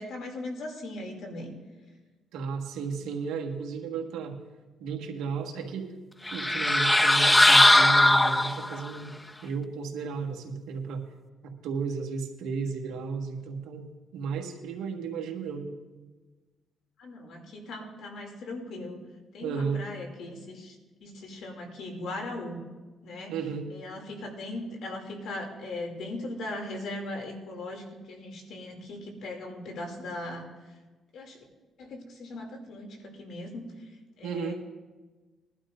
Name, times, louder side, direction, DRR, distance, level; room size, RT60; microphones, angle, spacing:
voice 1, 0.0-1.6 17.0-19.0 19.3-20.8 21.0-22.6 23.0-23.3 23.7-30.4 31.1-31.4 31.8-33.9 34.2-34.5, left 2 dB, 75° left, 2 dB, 2.7 m, -39 dB
voice 2, 2.3-4.4 4.8-5.9 6.3-9.1 9.4-11.0 11.4-13.9 14.1-15.7 19.4-19.8 23.3-23.7 34.2-34.5, right 5 dB, 90° right, 2 dB, 1.5 m, -34 dB
sound 1, 6.3-8.9, left 1 dB, 10° left, 0.4 m, -19 dB
21.0 x 11.5 x 2.6 m, 1.3 s
cardioid pair, 90°, 0 cm